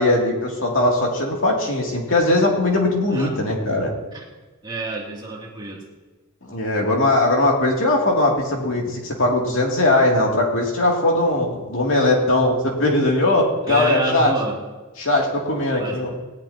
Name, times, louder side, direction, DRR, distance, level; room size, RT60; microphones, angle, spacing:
voice 1, 0.0-3.9 6.4-14.3 15.0-16.1, left 2 dB, 60° left, -1 dB, 2.8 m, -20 dB
voice 2, 4.6-5.8 13.7-14.6 15.8-16.0, right 2 dB, 20° right, -3 dB, 2.7 m, -28 dB
18.5 x 18.5 x 2.9 m, 1.2 s
head